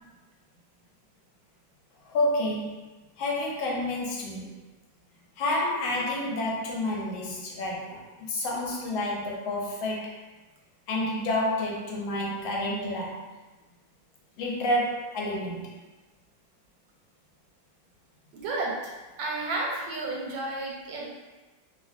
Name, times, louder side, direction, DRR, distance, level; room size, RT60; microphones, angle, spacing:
voice 1, 2.0-2.8 3.2-4.6 5.4-8.0 8.3-10.1 10.9-13.3 14.4-15.7, left 1 dB, 85° left, -2 dB, 1.4 m, -29 dB
voice 2, 18.3-18.9 19.2-21.1, right 2 dB, 85° right, -2 dB, 1.4 m, -32 dB
3.0 x 2.5 x 2.4 m, 1.2 s
omnidirectional pair, 2.1 m